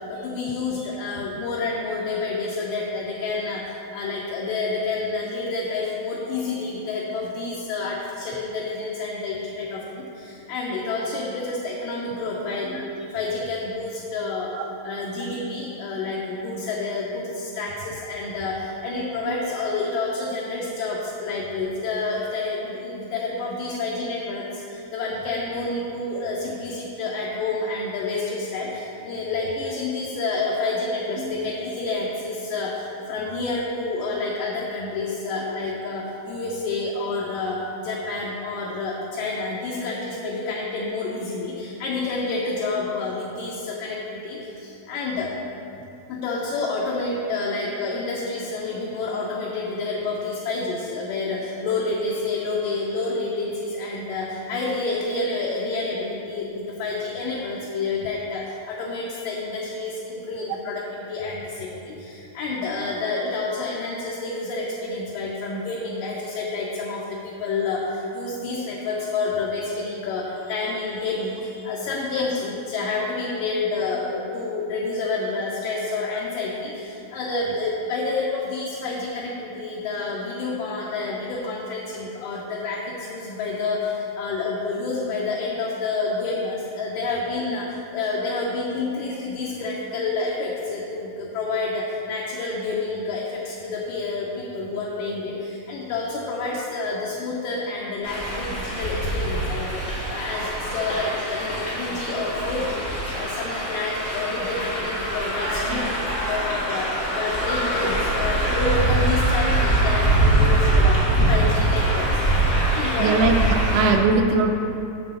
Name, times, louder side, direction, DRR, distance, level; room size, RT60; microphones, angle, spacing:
voice 1, 0.1-14.5 14.8-45.3 46.1-106.0 106.2-113.1, left 3 dB, 75° left, -4 dB, 2.2 m, -29 dB
voice 2, 12.3-12.9 14.5-14.6 19.2-19.3 31.2-31.4 105.7-105.8 113.0-114.6, right 3 dB, 85° right, 4 dB, 2.5 m, -22 dB
sound 1, 98.0-113.9, right 1 dB, 45° left, 0.8 m, -23 dB
7.7 x 3.8 x 6.7 m, 2.8 s
omnidirectional pair, 4.3 m